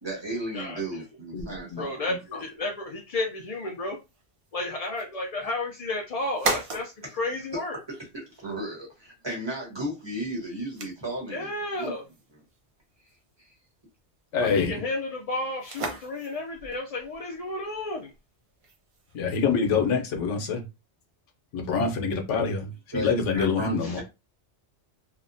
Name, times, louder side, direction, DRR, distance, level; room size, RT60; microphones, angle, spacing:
voice 1, 0.0-2.0 5.4-5.5 7.9-11.5 11.8-11.9 13.4-13.5 22.9-24.0, right 1 dB, 25° right, 1.0 m, -34 dB
voice 2, 0.5-1.0 1.8-4.0 4.5-7.8 11.3-12.0 14.4-18.1 23.8-24.0, left 2 dB, 60° left, 0.4 m, -32 dB
voice 3, 1.3-1.8 14.3-14.8 19.1-20.6 21.5-24.0, left 5 dB, 90° left, 1.0 m, -26 dB
sound 1, 1.4-19.8, right 3 dB, 50° right, 0.4 m, -40 dB
2.9 x 2.0 x 2.5 m
omnidirectional pair, 1.2 m